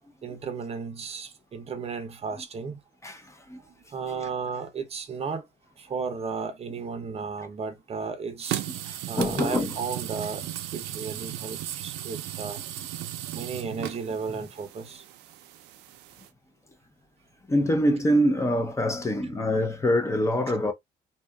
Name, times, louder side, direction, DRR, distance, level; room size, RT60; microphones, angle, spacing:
voice 1, 0.2-2.8 3.9-5.5 5.8-12.7 13.3-15.0, right 5 dB, 35° right, 0.7 m, -34 dB
voice 2, 3.0-3.6 8.9-9.7 17.5-20.7, equal, 15° left, 0.5 m, -25 dB
Kitchen Sink Tap Water Opening And Closing Very Soft, 8.4-16.3, right 13 dB, 90° right, 0.4 m, -36 dB
2.7 x 2.4 x 2.2 m
cardioid pair, 110°, 17 cm